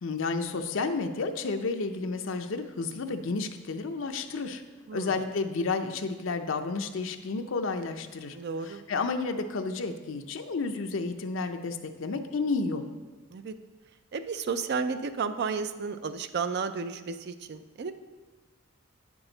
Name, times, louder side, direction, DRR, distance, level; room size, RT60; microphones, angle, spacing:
voice 1, 0.0-4.6 4.9-8.4 8.6-12.9, left 4 dB, 65° left, 6 dB, 0.5 m, -31 dB
voice 2, 8.3-8.8 13.3-13.5 14.1-17.9, right 5 dB, 50° right, 11 dB, 0.4 m, -32 dB
8.8 x 6.1 x 3.9 m, 1.3 s
head